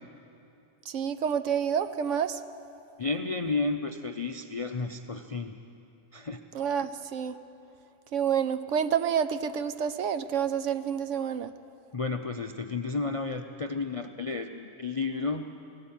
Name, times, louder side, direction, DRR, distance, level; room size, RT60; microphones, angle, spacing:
voice 1, 0.9-2.4 6.5-7.3 8.1-11.5, right 8 dB, 65° right, 12 dB, 0.9 m, -28 dB
voice 2, 3.0-5.6 6.1-6.4 11.9-15.5, left 3 dB, 45° left, 6 dB, 0.4 m, -32 dB
17.5 x 17.0 x 8.8 m, 2.7 s
omnidirectional pair, 1.5 m